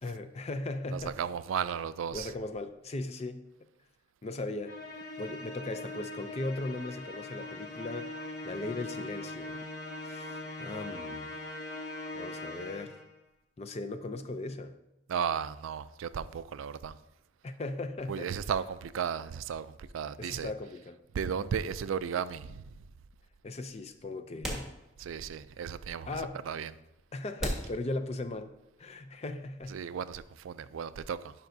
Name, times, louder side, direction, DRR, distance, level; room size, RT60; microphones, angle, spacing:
voice 1, 0.0-1.2 2.1-3.5 4.2-4.7 5.2-9.6 10.0-11.3 12.1-13.0 13.6-14.8 17.4-18.3 20.2-21.0 23.4-24.8 26.1-26.4 27.1-28.5 28.8-29.8, left 2 dB, 35° left, 9 dB, 0.4 m, -38 dB
voice 2, 0.9-2.3 15.1-16.9 18.1-20.5 21.1-22.6 25.0-26.1 26.5-26.7 29.7-31.3, right 7 dB, 85° right, 15 dB, 0.4 m, -34 dB
Musical instrument, 4.6-13.1, left 2 dB, 50° left, 0.8 m, -41 dB
sound 1, 24.4-25.3 25.7-25.8 26.5-26.6 27.4-28.6, equal, ahead, 1.5 m, -38 dB
11.5 x 5.7 x 2.7 m, 0.89 s
head